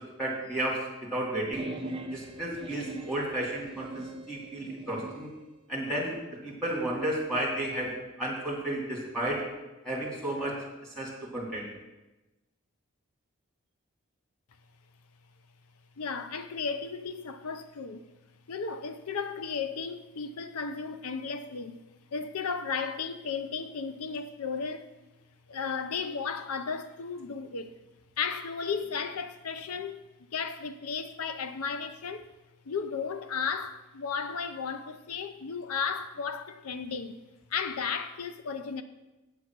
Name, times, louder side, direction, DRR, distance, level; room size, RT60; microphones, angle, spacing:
voice 1, 0.2-1.6 2.1-5.3 5.7-6.2 6.4-7.9 8.2-9.5 9.8-10.6 11.0-11.7, right 1 dB, ahead, 2.5 m, -32 dB
sound 1, 1.5-5.3, right 1 dB, 25° right, 0.7 m, -41 dB
voice 2, 16.0-18.1 18.5-21.8 22.1-24.9 25.5-27.7 28.2-32.3 32.7-37.2 37.5-38.8, left 5 dB, 85° left, 0.6 m, -34 dB
8.2 x 8.1 x 6.0 m
head